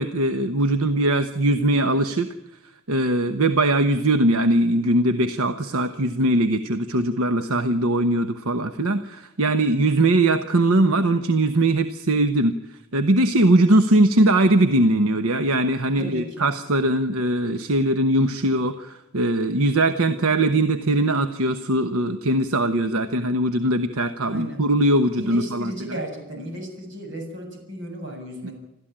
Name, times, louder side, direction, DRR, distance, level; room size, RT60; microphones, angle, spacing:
voice 1, 0.0-2.3 2.9-26.0 28.4-28.5, right 1 dB, 80° right, 9 dB, 1.1 m, -21 dB
voice 2, 16.0-16.5 24.3-24.6 25.1-28.5, right 1 dB, 60° right, 3 dB, 7.3 m, -35 dB
27.5 x 13.5 x 8.9 m, 0.98 s
head